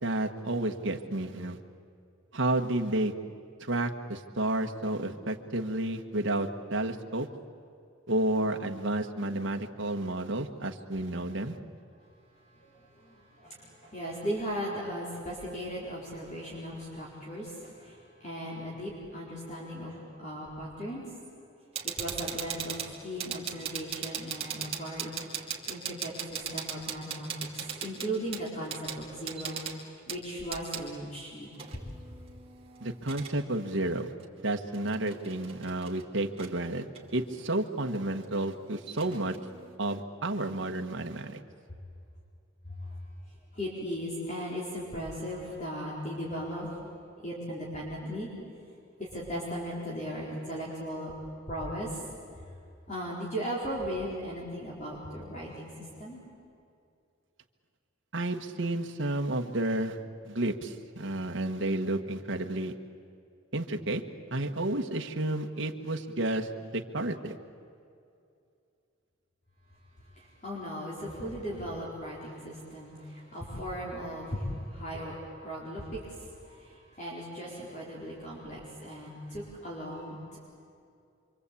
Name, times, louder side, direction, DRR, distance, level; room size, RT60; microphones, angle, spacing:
voice 1, 0.0-1.6 2.3-3.1 3.6-7.3 8.1-11.6 32.8-34.1 34.4-36.9 37.1-39.3 39.8-41.4 58.1-60.0 60.2-62.7 63.5-64.0 64.3-67.4, right 1 dB, 65° right, 4 dB, 1.5 m, -31 dB
voice 2, 12.4-21.1 21.8-29.6 30.1-31.5 42.7-43.0 43.5-46.7 47.2-48.3 49.0-51.1 51.5-52.1 52.4-52.5 52.9-56.2 70.1-80.4, equal, 35° left, -4 dB, 4.4 m, -37 dB
sound 1, 21.8-30.8 31.5-33.3 34.2-34.3 34.7-36.0 36.4-36.5 36.9-39.8, right 7 dB, 30° right, 2.6 m, -39 dB
26.5 x 24.5 x 8.5 m, 2.5 s
head